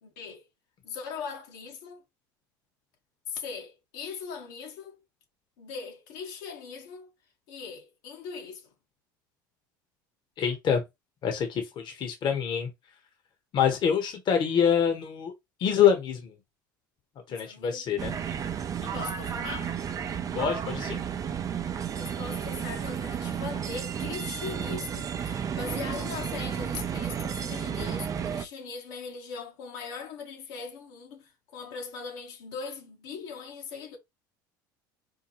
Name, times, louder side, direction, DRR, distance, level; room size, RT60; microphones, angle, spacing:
voice 1, 0.0-0.5 0.8-2.0 3.3-5.0 5.6-7.1 7.5-8.7 17.3-18.1 18.9-19.8 22.0-34.0, left 5 dB, 75° left, 1.3 m, -40 dB
voice 2, 10.4-10.8 11.2-12.7 13.5-15.3 15.6-16.3 17.3-18.1 18.8-19.0 20.3-21.0, left 8 dB, 45° left, 1.1 m, -26 dB
sound 1, 18.0-28.4, right 8 dB, 35° right, 0.5 m, -32 dB
4.5 x 2.2 x 3.0 m
hypercardioid pair, 85°, 10 cm